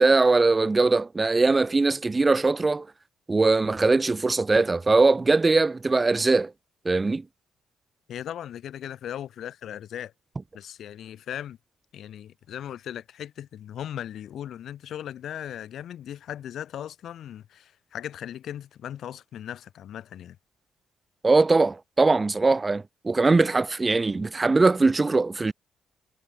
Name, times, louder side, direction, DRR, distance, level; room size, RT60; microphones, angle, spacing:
voice 1, 0.0-2.9 3.3-6.5 6.9-7.2 21.2-25.5, right 3 dB, 25° right, 0.6 m, -21 dB
voice 2, 8.1-10.1 10.5-11.6 11.9-20.4, left 10 dB, 70° left, 7.2 m, -38 dB
cardioid pair, 90°, 0 cm